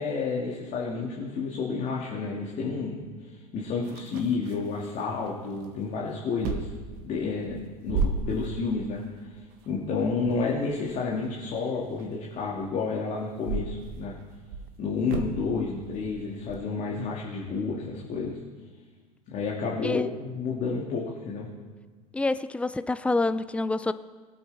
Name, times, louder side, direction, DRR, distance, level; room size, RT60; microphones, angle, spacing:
voice 1, 0.0-6.7 7.0-9.0 9.7-14.1 14.8-18.4 19.3-21.5, left 4 dB, 40° left, -4 dB, 2.4 m, -30 dB
sound 1, 3.8-5.3 5.6-6.0 6.4-12.7 13.3-16.6, right 4 dB, 50° right, 1.4 m, -35 dB
voice 2, 22.1-23.9, left 2 dB, 5° left, 14 dB, 0.5 m, -27 dB
22.0 x 8.5 x 3.6 m, 1.4 s
figure-of-eight pair, 80°, 20 cm